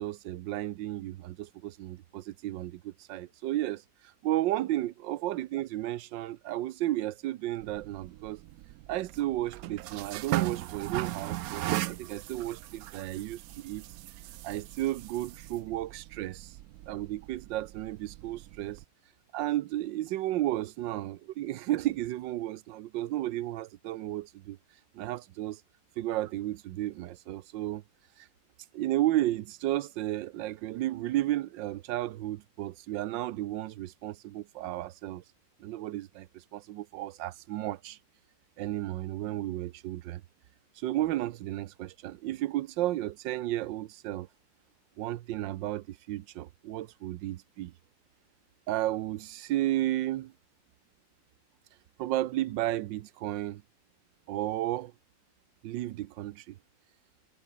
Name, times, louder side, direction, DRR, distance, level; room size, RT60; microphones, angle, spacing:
voice 1, 0.0-3.8 4.2-8.4 8.9-13.8 14.4-16.6 16.9-18.8 19.3-24.6 24.9-25.6 26.0-27.8 28.2-28.3 28.7-35.2 35.6-38.0 38.6-40.2 40.8-44.3 45.0-47.7 48.7-50.3 52.0-53.6 54.3-54.9 55.6-56.6, right 14 dB, 90° right, 1.4 m, -33 dB
sound 1, 7.6-18.8, right 15 dB, 70° right, 0.8 m, -38 dB
omnidirectional pair, 2.0 m